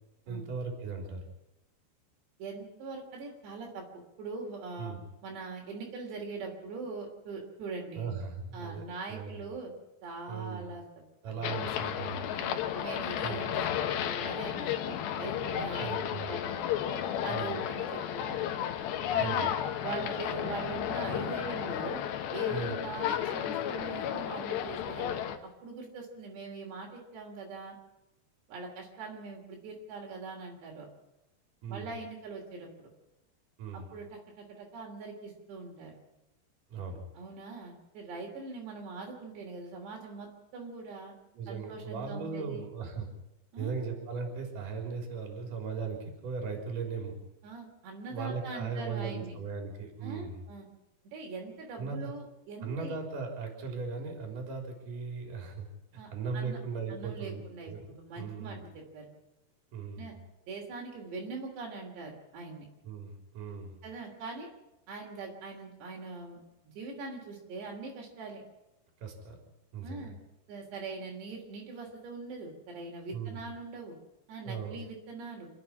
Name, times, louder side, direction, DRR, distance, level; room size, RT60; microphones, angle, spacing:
voice 1, 0.3-1.2 4.8-5.0 7.9-8.8 9.1-9.4 10.3-10.7 11.2-12.3 13.2-13.4 15.8-16.4 17.3-17.5 19.2-19.5 22.5-22.8 31.6-31.9 33.6-33.9 36.7-37.0 41.3-43.1 43.6-47.2 48.1-50.4 51.8-52.1 52.6-55.7 55.9-57.8 58.1-58.6 59.7-60.2 62.8-63.8 69.0-69.4 69.7-70.1 73.1-73.4 74.4-74.8, right 5 dB, 50° right, 2 dB, 5.1 m, -38 dB
voice 2, 2.4-5.0 5.2-8.1 8.5-9.7 10.0-11.4 12.3-16.6 17.2-18.5 19.1-19.5 19.8-22.0 22.3-25.1 25.6-27.8 28.5-30.9 31.7-32.9 33.7-36.0 37.2-41.1 41.5-42.7 43.5-43.8 47.4-49.3 50.0-50.7 51.1-52.9 56.0-56.6 56.9-59.2 60.0-60.1 60.5-62.7 63.8-64.5 64.9-66.4 66.8-68.4 69.8-70.2 70.5-74.0 74.3-75.5, right 3 dB, 75° right, 0 dB, 5.3 m, -42 dB
sound 1, 11.4-25.4, left 10 dB, 75° left, 3.3 m, -33 dB
27.5 x 9.4 x 9.9 m, 0.94 s
omnidirectional pair, 5.0 m